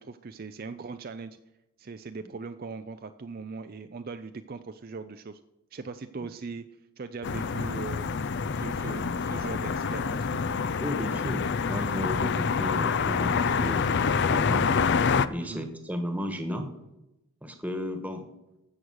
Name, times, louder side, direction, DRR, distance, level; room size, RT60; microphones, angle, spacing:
voice 1, 0.0-1.4 1.8-5.4 5.7-6.7 7.0-10.4 15.4-15.7, right 4 dB, 40° right, 9 dB, 0.4 m, -40 dB
sound 1, 7.2-15.3, left 5 dB, 50° left, 0.4 m, -27 dB
voice 2, 10.8-14.7 15.3-16.7 17.4-18.3, left 1 dB, 5° right, 6 dB, 1.4 m, -34 dB
15.0 x 6.5 x 6.3 m, 0.94 s
head